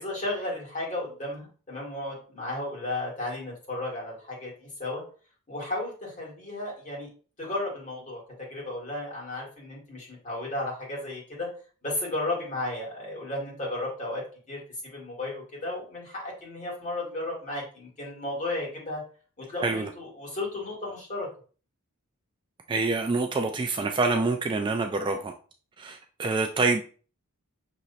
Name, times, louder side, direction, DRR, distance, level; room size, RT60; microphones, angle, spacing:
voice 1, 0.0-5.0 5.5-7.1 7.4-11.5 11.8-19.0 19.4-21.3, left 2 dB, 35° left, -5 dB, 2.3 m, -34 dB
voice 2, 22.7-25.3 25.8-26.8, right 3 dB, 20° right, 5 dB, 0.3 m, -26 dB
6.2 x 3.0 x 2.8 m, 0.39 s
head